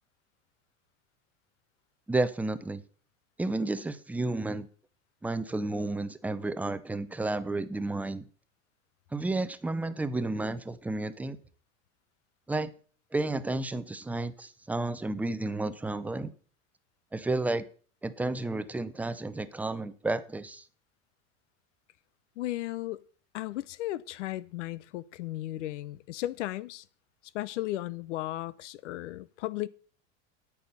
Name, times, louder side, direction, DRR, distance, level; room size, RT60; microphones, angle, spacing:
voice 1, 2.1-2.8 3.4-4.7 5.2-8.3 9.1-11.4 12.5-12.7 13.1-16.3 17.1-17.7 18.0-20.6, right 2 dB, 5° right, 0.5 m, -31 dB
voice 2, 22.4-23.0 23.3-26.8 27.3-29.7, left 15 dB, 85° left, 0.8 m, -35 dB
8.9 x 8.5 x 5.5 m
supercardioid pair, 135°, 35 cm